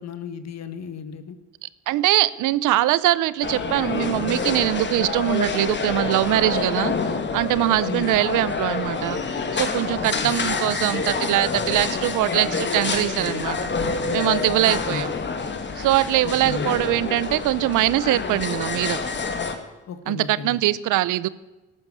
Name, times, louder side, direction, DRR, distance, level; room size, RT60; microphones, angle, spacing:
voice 1, 0.0-1.3 7.8-8.1 10.0-10.3 14.6-15.1 16.2-16.7 19.9-20.6, left 6 dB, 60° left, 10 dB, 1.5 m, -34 dB
voice 2, 1.9-6.9 7.3-9.2 9.5-13.6 14.1-15.1 15.8-19.0 20.1-21.3, right 15 dB, 85° right, 18 dB, 0.7 m, -22 dB
sound 1, 3.4-19.6, left 4 dB, 35° left, 2.1 m, -27 dB
13.0 x 12.0 x 8.5 m, 1.1 s
cardioid pair, 90°, 30 cm